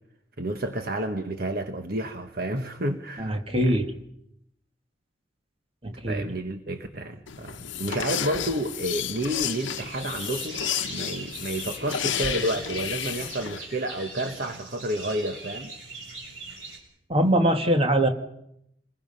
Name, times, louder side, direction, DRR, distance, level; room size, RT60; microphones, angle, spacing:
voice 1, 0.4-3.3 3.6-3.8 6.0-15.7, right 1 dB, 50° right, 6 dB, 1.3 m, -30 dB
voice 2, 3.2-3.9 5.8-6.3 17.1-18.1, right 1 dB, 30° right, 5 dB, 2.0 m, -22 dB
sound 1, 7.3-13.6, left 9 dB, 80° left, 0.9 m, -32 dB
sound 2, 9.4-16.8, right 3 dB, 85° right, 7.9 m, -41 dB
29.0 x 21.0 x 5.6 m, 0.76 s
head